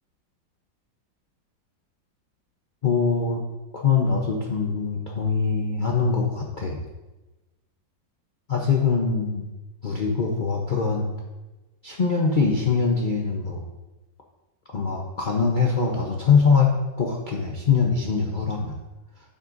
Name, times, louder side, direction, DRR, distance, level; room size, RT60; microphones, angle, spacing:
voice 1, 2.8-3.4 3.7-6.8 8.5-9.4 9.8-11.1 11.8-13.6 14.7-16.7 17.0-18.8, left 5 dB, 80° left, -2 dB, 0.4 m, -23 dB
9.2 x 8.3 x 2.6 m, 1.1 s
omnidirectional pair, 2.1 m